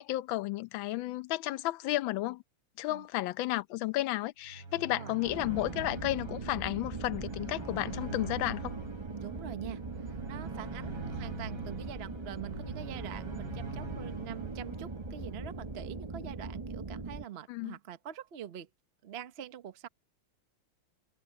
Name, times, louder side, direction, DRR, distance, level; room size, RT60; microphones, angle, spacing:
voice 1, 0.0-2.4 2.8-8.7 17.5-17.8, left 17 dB, 70° left, 1.4 m, -33 dB
sound 1, 4.4-15.8, right 3 dB, 70° right, 5.5 m, -45 dB
sound 2, 5.2-17.2, right 3 dB, 20° right, 1.0 m, -40 dB
voice 2, 9.2-9.8 10.3-18.7 19.0-19.9, right 9 dB, 55° right, 0.7 m, -44 dB
omnidirectional pair, 2.4 m